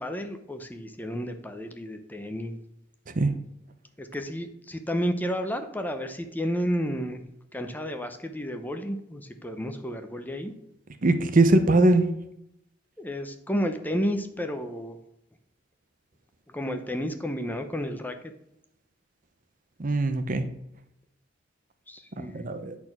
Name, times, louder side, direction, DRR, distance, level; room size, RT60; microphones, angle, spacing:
voice 1, 0.0-2.6 4.0-7.3 7.5-10.5 13.0-15.0 16.5-18.2 21.9-22.6, equal, 10° left, 6 dB, 0.6 m, -31 dB
voice 2, 11.0-12.1 19.8-20.4 22.3-22.8, right 2 dB, 45° right, 9 dB, 0.7 m, -21 dB
8.5 x 4.4 x 5.9 m, 0.78 s
head